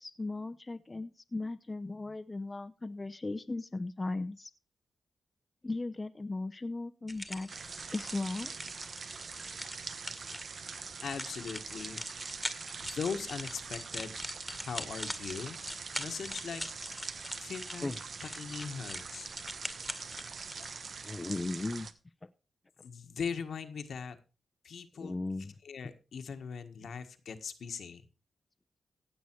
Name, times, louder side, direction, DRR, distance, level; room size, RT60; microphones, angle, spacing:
voice 1, 0.0-4.5 5.6-7.5 7.9-8.5 17.8-17.9 21.0-21.9 22.2-22.3 25.0-25.5, left 2 dB, 25° left, 9 dB, 0.8 m, -37 dB
sound 1, 7.1-20.7, left 1 dB, 5° left, 1.8 m, -43 dB
sound 2, 7.5-21.9, right 5 dB, 60° right, 1.1 m, -44 dB
voice 2, 11.0-12.0 12.8-14.1 14.5-15.6 16.0-16.7 17.0-18.0 18.2-19.3 22.8-24.2 24.6-25.1 25.6-28.0, left 6 dB, 75° left, 7 dB, 1.6 m, -40 dB
16.0 x 8.1 x 4.6 m, 0.33 s
cardioid pair, 70°, 0 cm